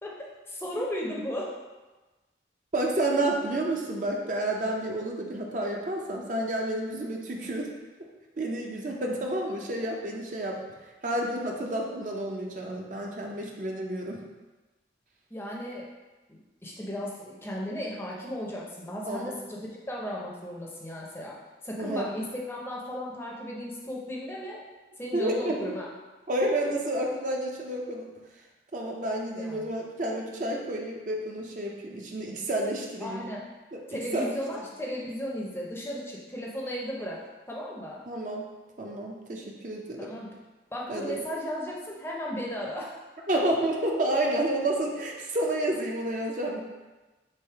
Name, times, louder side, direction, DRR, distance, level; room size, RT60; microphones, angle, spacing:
voice 1, 0.0-1.5 15.3-15.9 16.3-21.4 21.6-24.7 25.0-25.9 29.3-29.7 33.0-33.4 33.9-38.0 40.0-40.3 40.7-43.0, equal, 15° left, -3 dB, 0.5 m, -35 dB
voice 2, 2.7-7.7 8.4-10.6 11.0-14.2 19.1-19.4 21.8-22.1 25.1-25.7 26.3-28.1 28.7-33.2 33.7-34.4 38.1-38.4 38.8-40.1 40.9-41.2 43.3-46.6, right 1 dB, 45° right, 0 dB, 0.5 m, -30 dB
3.4 x 3.1 x 4.5 m, 1.2 s
head